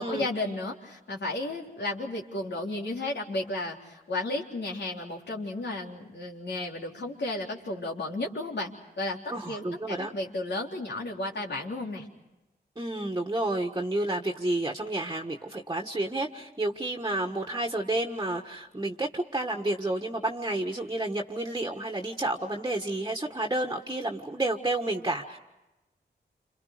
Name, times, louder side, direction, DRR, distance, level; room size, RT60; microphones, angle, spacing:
voice 1, 0.0-12.1, left 2 dB, 80° left, -1 dB, 3.7 m, -33 dB
voice 2, 9.3-10.1 12.8-25.4, right 2 dB, 20° right, 2 dB, 1.6 m, -30 dB
29.5 x 27.5 x 5.1 m, 1.0 s
wide cardioid pair, 80°, 18 cm